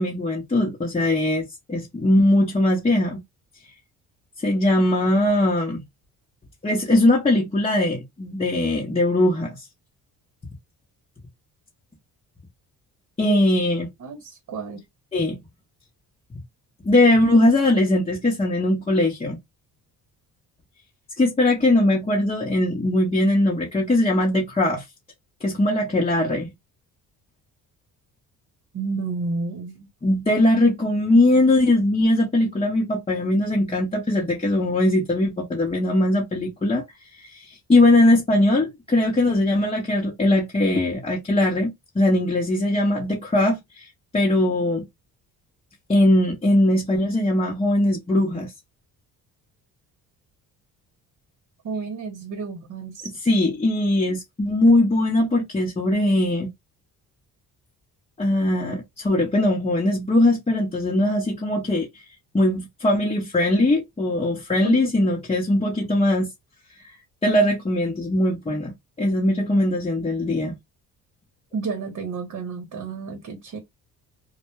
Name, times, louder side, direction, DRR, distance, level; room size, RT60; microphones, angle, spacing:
voice 1, 0.0-3.2 4.4-5.8 6.6-9.6 13.2-13.9 15.1-15.4 16.8-19.4 21.2-24.8 25.4-26.5 30.0-36.8 37.2-43.9 44.1-44.9 45.9-48.5 53.3-56.5 58.2-61.9 62.3-66.3 67.2-68.7 69.0-70.5, left 1 dB, 15° left, 0.7 m, -20 dB
voice 2, 14.0-14.8 28.7-29.9 51.6-53.1 64.6-64.9 71.5-73.6, right 4 dB, 50° right, 0.9 m, -31 dB
2.2 x 2.1 x 3.0 m
cardioid pair, 85°, 37 cm